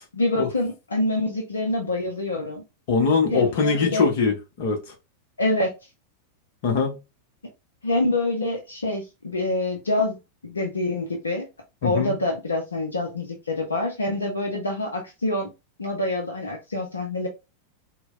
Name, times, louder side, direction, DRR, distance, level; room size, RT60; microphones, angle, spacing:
voice 1, 0.1-2.6 3.3-4.1 5.4-5.7 7.8-11.5 11.8-15.5 15.8-17.3, left 2 dB, 75° left, 0.6 m, -26 dB
voice 2, 2.9-4.8 6.6-7.0 11.8-12.1, left 5 dB, 50° left, 0.9 m, -22 dB
4.3 x 2.2 x 2.4 m
figure-of-eight pair, 90°, 0 cm